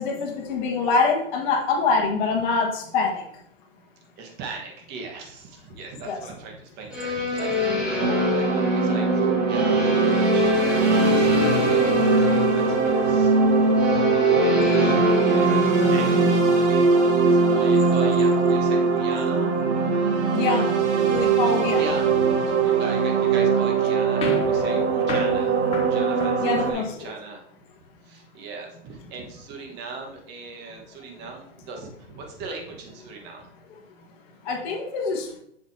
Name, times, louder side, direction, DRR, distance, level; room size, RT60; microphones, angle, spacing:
voice 1, 0.0-3.2 6.1-6.2 20.3-20.7 21.1-21.8 26.4-27.1 34.5-35.3, left 4 dB, 40° left, 0 dB, 1.6 m, -24 dB
voice 2, 4.2-16.9 17.2-19.8 21.1-21.3 21.7-27.4 28.0-33.5, right 4 dB, 30° right, 1 dB, 1.5 m, -39 dB
sound 1, 6.9-16.4, left 2 dB, 5° right, 0.3 m, -26 dB
sound 2, 8.0-26.7, right 4 dB, 65° right, 1.4 m, -21 dB
sound 3, 24.2-27.1, left 5 dB, 15° left, 0.9 m, -35 dB
7.7 x 6.8 x 2.8 m, 0.73 s
hypercardioid pair, 135°, 37 cm